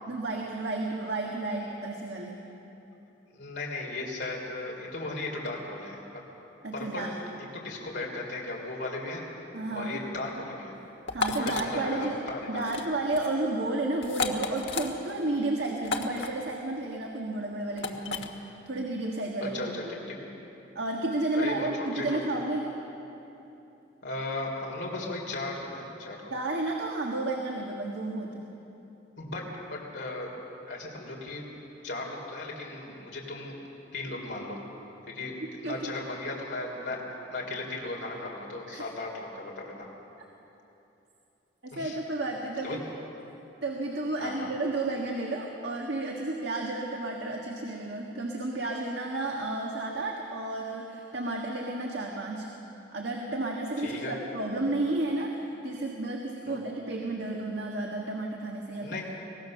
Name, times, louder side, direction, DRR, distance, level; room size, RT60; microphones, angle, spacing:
voice 1, 0.1-2.4 6.6-7.1 9.5-10.0 11.1-12.2 12.5-18.3 18.6-19.7 20.7-22.7 26.3-28.4 35.6-36.0 38.7-38.8 41.6-42.8 43.6-52.5 52.9-59.0, right 2 dB, 70° right, 0 dB, 1.6 m, -32 dB
voice 2, 3.3-6.0 6.7-7.1 7.5-9.4 9.7-10.8 11.4-12.6 19.4-20.1 21.3-22.2 24.0-26.3 29.2-30.3 30.7-31.4 31.8-33.5 33.9-34.6 35.1-35.3 35.6-39.9 41.7-42.0 42.6-42.8 44.2-44.5 53.8-54.1 56.5-56.6 58.8-59.0, left 2 dB, 65° left, -2 dB, 3.3 m, -36 dB
sound 1, 11.1-11.7 12.6-12.9 13.1-13.3 14.0-14.9 15.8-16.3 17.8-18.3, left 4 dB, 85° left, 1.4 m, -32 dB
23.5 x 17.5 x 6.5 m, 3.0 s
head